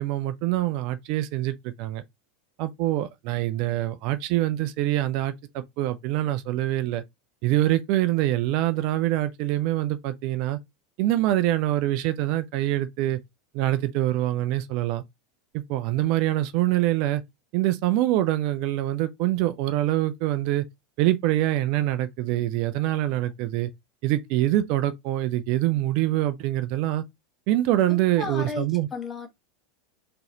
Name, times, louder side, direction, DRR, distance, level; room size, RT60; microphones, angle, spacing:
voice 1, 0.0-2.0 2.6-7.0 7.4-10.6 11.0-13.2 13.5-15.0 15.5-17.2 17.5-20.6 21.0-23.7 24.0-27.0 27.5-28.9, right 14 dB, 50° right, 0.5 m, -25 dB
voice 2, 27.9-29.3, left 5 dB, 25° left, 1.5 m, -35 dB
3.8 x 3.8 x 2.9 m
figure-of-eight pair, 80°, 0 cm